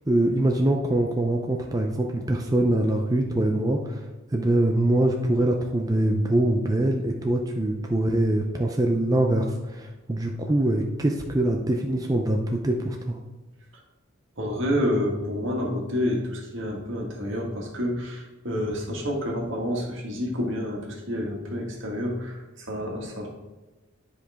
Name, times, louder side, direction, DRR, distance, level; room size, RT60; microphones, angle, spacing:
voice 1, 0.1-4.0 4.3-13.2, right 1 dB, 20° right, 1 dB, 0.5 m, -23 dB
voice 2, 14.4-23.3, left 1 dB, 70° right, -1 dB, 1.7 m, -29 dB
10.0 x 5.0 x 3.5 m, 1.1 s
head